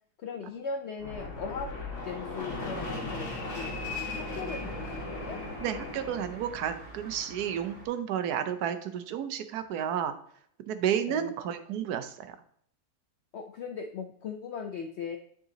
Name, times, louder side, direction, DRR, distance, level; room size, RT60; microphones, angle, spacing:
voice 1, 0.2-1.7 2.0-3.3 3.6-5.4 11.1-11.3 13.3-15.2, left 5 dB, 75° left, 6 dB, 0.6 m, -39 dB
Fixed-wing aircraft airplane, 1.0-6.6, left 3 dB, 50° left, 1.8 m, -37 dB
sound 1, 2.5-7.9, right 4 dB, 35° right, 2.0 m, -44 dB
voice 2, 5.6-10.1 10.7-12.3, right 9 dB, 80° right, 10 dB, 1.2 m, -31 dB
8.9 x 3.9 x 3.8 m, 0.65 s
omnidirectional pair, 1.7 m